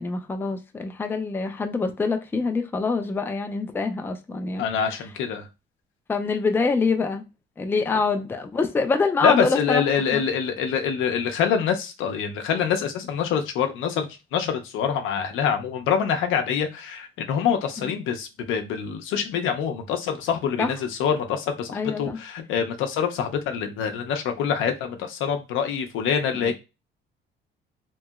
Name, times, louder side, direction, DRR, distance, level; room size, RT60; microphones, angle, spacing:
voice 1, 0.0-4.7 6.1-7.3 7.6-9.8 10.1-10.2 17.8-18.0 20.6-20.7 21.7-22.2 26.3-26.5, left 4 dB, 10° left, 0.3 m, -25 dB
voice 2, 4.6-5.5 9.2-26.5, left 7 dB, 80° left, 0.6 m, -25 dB
3.0 x 2.7 x 2.3 m
cardioid pair, 115°, 20 cm